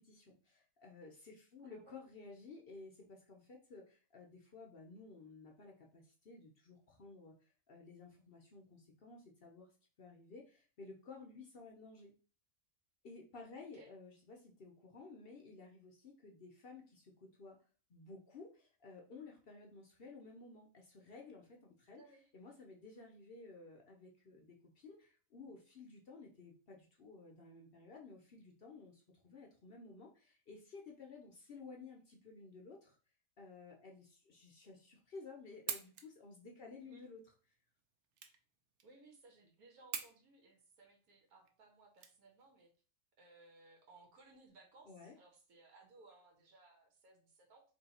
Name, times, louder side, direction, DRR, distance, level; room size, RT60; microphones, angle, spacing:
voice 1, 0.0-9.7 10.0-12.1 13.0-17.6 17.9-22.0 22.3-33.0 33.4-37.2 44.8-45.2, left 3 dB, 55° left, 1 dB, 0.7 m, -55 dB
voice 2, 1.6-2.0 13.7-13.9 22.0-22.3 36.8-37.1 38.8-42.7 43.2-47.6, right 3 dB, 85° right, 3 dB, 1.4 m, -62 dB
sound 1, 35.4-42.7, right 8 dB, 65° right, 0.8 m, -48 dB
3.1 x 2.7 x 4.0 m, 0.38 s
omnidirectional pair, 1.5 m